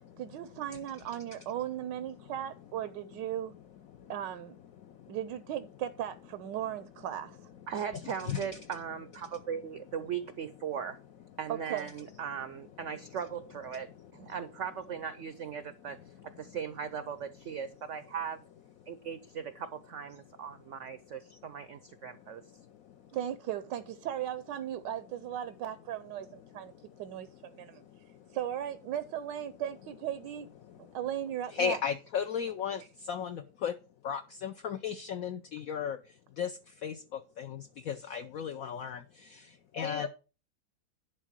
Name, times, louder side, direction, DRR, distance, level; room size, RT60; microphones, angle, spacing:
voice 1, 0.2-3.5 4.1-4.6 5.1-7.4 11.5-11.9 23.1-26.7 27.0-27.8 28.3-30.5 30.8-31.8, right 11 dB, 85° right, 1.3 m, -37 dB
voice 2, 4.8-5.2 8.2-8.5 13.8-13.9 15.9-16.0 18.8-19.0 21.3-21.4 22.0-23.1 26.5-27.0 27.5-28.4 30.6-31.0 31.5-33.8 34.0-40.1, left 7 dB, 65° left, 1.0 m, -37 dB
voice 3, 7.7-11.0 11.4-16.0 16.2-18.4 18.9-22.4, right 7 dB, 65° right, 0.8 m, -38 dB
11.0 x 3.7 x 7.3 m
omnidirectional pair, 1.8 m